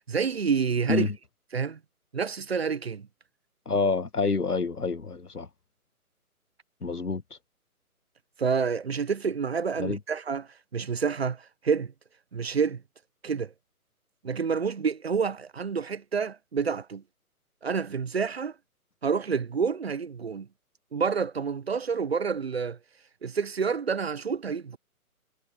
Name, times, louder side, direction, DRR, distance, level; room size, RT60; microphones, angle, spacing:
voice 1, 0.1-1.1 1.5-1.8 2.1-3.1 8.4-11.9 12.3-12.8 13.2-13.5 14.2-17.0 17.6-18.5 19.0-20.5 20.9-22.8 23.2-24.8, right 6 dB, 45° right, 0.6 m, -28 dB
voice 2, 3.7-5.5 6.8-7.2 9.8-10.0, left 4 dB, 90° left, 1.1 m, -27 dB
figure-of-eight pair, 140°, 44 cm